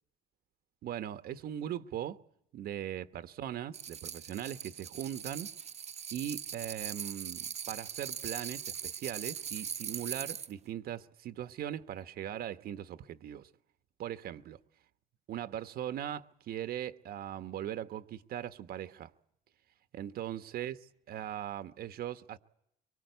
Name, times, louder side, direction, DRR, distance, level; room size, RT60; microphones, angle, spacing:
voice 1, 0.8-2.2 2.5-5.5 6.1-13.5 14.0-14.6 15.3-19.1 19.9-22.4, right 11 dB, 65° right, 1.2 m, -39 dB
sound 1, 3.7-10.5, right 8 dB, 40° right, 1.0 m, -41 dB
25.0 x 23.5 x 8.1 m
cardioid pair, 110°, 17 cm